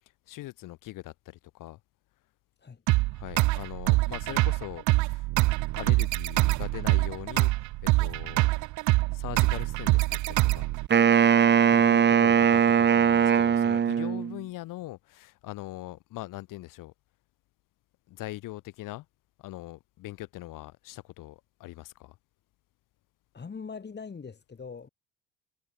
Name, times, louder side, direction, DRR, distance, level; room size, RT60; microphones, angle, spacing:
voice 1, 0.3-1.8 3.1-5.3 5.8-7.5 7.8-8.5 9.1-10.7 11.7-16.9 18.1-19.1 19.4-22.2, left 17 dB, 60° left, 4.8 m, -41 dB
sound 1, 2.9-10.9, right 21 dB, 55° right, 0.6 m, -25 dB
Wind instrument woodwind instrument, 10.9-14.4, right 7 dB, 30° right, 1.1 m, -20 dB
voice 2, 23.3-24.9, left 5 dB, 30° left, 4.6 m, -42 dB
hypercardioid pair, 65°, 36 cm